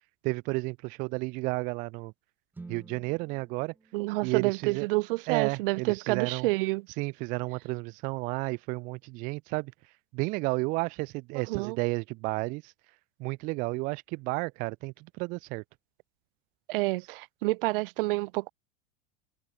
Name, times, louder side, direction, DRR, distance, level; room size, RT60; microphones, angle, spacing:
voice 1, 0.2-2.1 2.7-3.7 4.2-4.9 5.3-6.5 7.0-9.7 10.1-12.7 13.2-15.6, right 25 dB, 25° right, 0.4 m, -32 dB
sound 1, 2.5-6.6, right 3 dB, 5° right, 1.3 m, -53 dB
voice 2, 3.9-6.9 11.3-11.8 16.7-18.5, right 22 dB, 65° right, 0.8 m, -29 dB
supercardioid pair, 180°, 30 cm